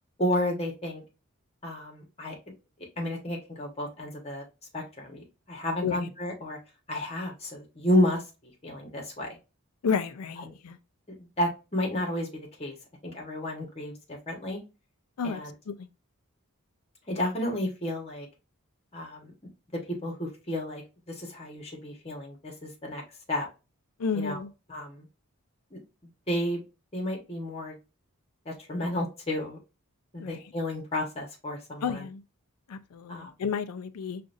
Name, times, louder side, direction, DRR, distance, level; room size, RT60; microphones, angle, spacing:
voice 1, 0.2-1.0 1.6-2.3 3.0-4.4 4.7-6.6 6.9-9.4 10.4-10.5 11.2-12.3 12.6-12.7 13.0-14.6 15.2-15.5 17.1-18.3 18.9-19.3 20.0-20.8 21.1-23.0 23.3-23.5 24.1-24.4 24.7-25.1 25.7-25.8 26.3-26.6 26.9-27.7 28.4-29.6 30.1-32.1 33.1-33.3, left 1 dB, 25° left, 1.2 m, -31 dB
voice 2, 9.8-10.8 15.2-15.4 15.7-15.9 24.0-24.5 30.2-30.4 31.8-32.2 32.7-34.2, left 6 dB, 90° left, 0.5 m, -31 dB
4.9 x 2.5 x 2.5 m
head